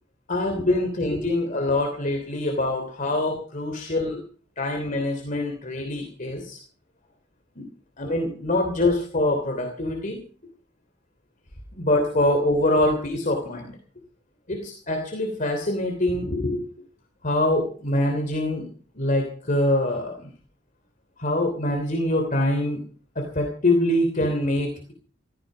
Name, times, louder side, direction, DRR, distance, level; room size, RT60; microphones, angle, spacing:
voice 1, 0.3-4.2 4.6-6.6 7.6-7.7 8.0-10.2 11.7-13.8 14.5-16.7 17.2-18.7 18.9-20.3 21.2-22.8 23.1-24.9, left 1 dB, 45° left, 3 dB, 3.1 m, -24 dB
16.5 x 15.0 x 5.1 m, 0.42 s
head